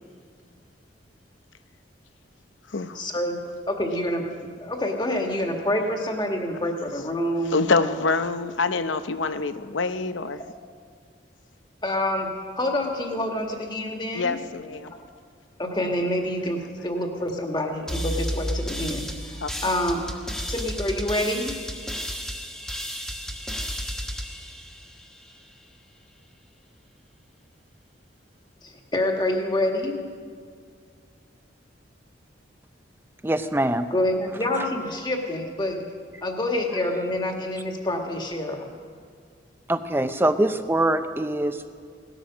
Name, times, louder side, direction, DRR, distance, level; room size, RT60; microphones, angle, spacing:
voice 1, 2.9-3.4 3.7-8.0 11.8-12.3 12.5-14.4 15.6-20.0 20.5-21.6 28.6-30.0 33.9-35.8 36.2-38.7, left 1 dB, 25° left, 2 dB, 1.7 m, -27 dB
voice 2, 7.5-10.4 14.1-14.9 19.4-19.5, left 4 dB, 90° left, 10 dB, 0.8 m, -25 dB
sound 1, 17.9-25.4, equal, 5° left, 1.3 m, -32 dB
voice 3, 33.2-33.9 39.7-41.7, right 1 dB, 10° right, 10 dB, 0.6 m, -23 dB
18.0 x 13.0 x 6.2 m, 2.1 s
head